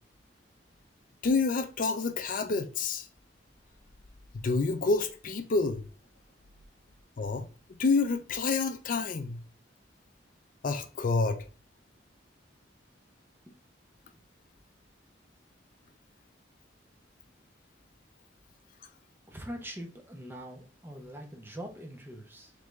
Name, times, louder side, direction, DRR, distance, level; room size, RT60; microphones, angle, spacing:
voice 1, 1.2-3.1 4.4-5.8 7.2-9.4 10.6-11.5, left 4 dB, 50° left, 0.4 m, -28 dB
voice 2, 19.3-22.5, equal, 10° right, 0.7 m, -43 dB
3.6 x 3.3 x 3.1 m
head